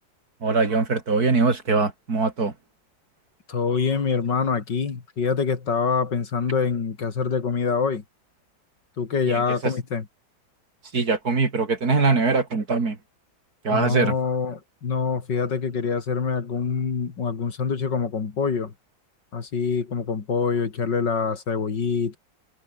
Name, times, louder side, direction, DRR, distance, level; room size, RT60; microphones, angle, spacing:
voice 1, 0.4-2.5 9.3-9.4 10.9-13.0 13.6-14.1, right 4 dB, 50° right, 3.3 m, -22 dB
voice 2, 3.5-8.0 9.0-10.1 13.7-18.7 19.3-22.2, left 5 dB, 65° left, 3.0 m, -25 dB
omnidirectional pair, 2.1 m